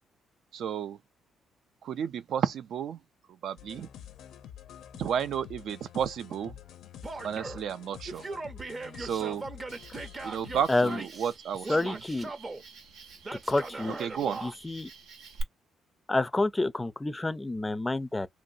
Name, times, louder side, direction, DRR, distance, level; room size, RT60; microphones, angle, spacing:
voice 1, 0.5-1.0 1.8-3.0 3.4-3.9 4.9-6.6 7.2-8.2 9.0-9.4 10.2-12.0 14.0-14.4, right 8 dB, 70° right, 0.3 m, -32 dB
sound 1, 3.6-10.7, left 10 dB, 80° left, 0.6 m, -48 dB
Male speech man speaking / Yell, 7.0-7.7 8.1-11.4 11.6-12.6 13.2-14.6, right 3 dB, 30° right, 0.6 m, -39 dB
Cricket, 9.7-15.4, right 4 dB, 85° right, 0.7 m, -48 dB
voice 2, 11.7-12.3 13.5-14.0 14.4-14.9 16.1-18.3, left 2 dB, 15° left, 0.4 m, -28 dB
3.0 x 2.4 x 2.7 m
cardioid pair, 90°, 0 cm